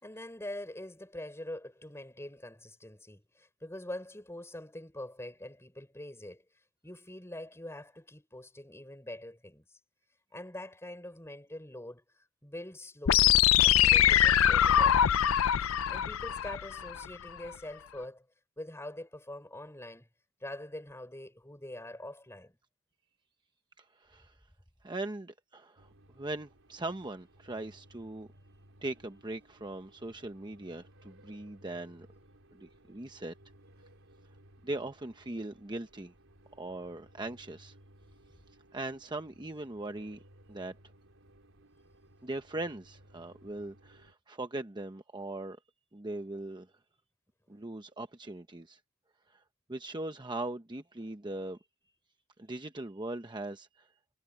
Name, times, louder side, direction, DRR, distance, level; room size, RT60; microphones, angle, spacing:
voice 1, 0.0-6.4 6.8-9.8 10.3-12.0 12.4-15.2 15.9-18.3 18.6-20.1 20.4-22.5, left 1 dB, 15° left, 5.3 m, -44 dB
sound 1, 13.1-17.1, left 10 dB, 90° left, 0.5 m, -23 dB
voice 2, 23.8-24.4 24.8-28.3 28.8-32.1 32.5-33.3 34.6-36.1 36.5-37.8 38.7-40.2 40.5-40.7 42.2-45.6 45.9-46.7 47.5-48.8 49.3-49.4 49.7-51.6 52.4-53.9, right 2 dB, 20° right, 0.9 m, -40 dB
sound 2, 25.8-44.1, right 1 dB, 80° right, 4.8 m, -60 dB
head